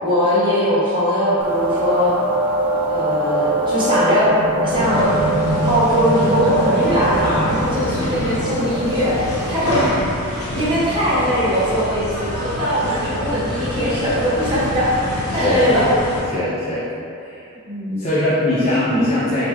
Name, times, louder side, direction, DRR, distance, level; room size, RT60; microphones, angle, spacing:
voice 1, 0.0-2.1 2.9-4.3 4.6-5.1 5.7-9.9 10.2-15.9 17.6-18.0, equal, 25° right, -10 dB, 1.1 m, -20 dB
sound 1, 1.4-9.9, right 1 dB, 85° right, 0.5 m, -23 dB
sound 2, 4.7-16.2, left 1 dB, 75° left, 0.9 m, -27 dB
voice 2, 15.3-15.7 16.3-16.9 17.2-17.4 18.0-19.5, left 1 dB, 30° left, -12 dB, 0.6 m, -22 dB
3.8 x 2.9 x 3.3 m, 2.7 s
head